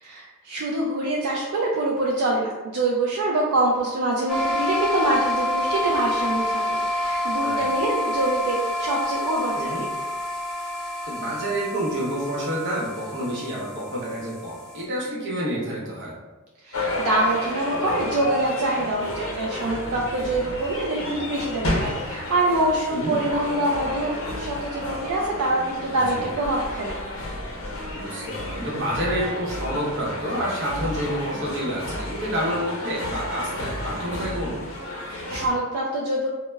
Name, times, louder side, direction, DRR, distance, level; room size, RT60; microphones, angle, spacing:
voice 1, 0.0-9.7 16.6-26.9 35.1-36.3, right 2 dB, 80° right, -2 dB, 0.4 m, -25 dB
sound 1, 4.3-14.8, left 1 dB, 5° left, 0.3 m, -28 dB
voice 2, 11.1-16.1 22.9-23.1 25.9-26.3 27.9-34.6, equal, 55° right, -5 dB, 0.8 m, -29 dB
sound 2, 16.7-35.5, left 1 dB, 75° left, 0.7 m, -31 dB
2.1 x 2.0 x 3.3 m, 1.2 s
head